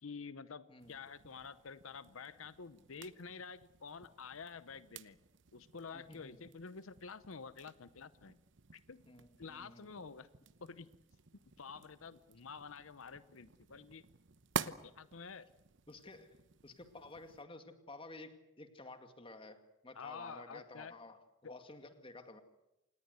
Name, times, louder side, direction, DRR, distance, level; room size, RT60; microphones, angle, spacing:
voice 1, 0.0-5.2 5.5-8.3 8.7-9.0 9.4-10.3 10.6-10.9 11.6-14.0 14.6-15.5 19.9-21.0 21.4-21.5, left 5 dB, 75° left, 14 dB, 0.8 m, -49 dB
sound 1, 0.8-17.4, right 6 dB, 60° right, 0.9 m, -50 dB
voice 2, 5.9-6.4 9.1-10.0 15.9-16.4 16.6-22.4, left 2 dB, 25° left, 7 dB, 2.2 m, -53 dB
28.0 x 19.0 x 8.1 m, 0.92 s
head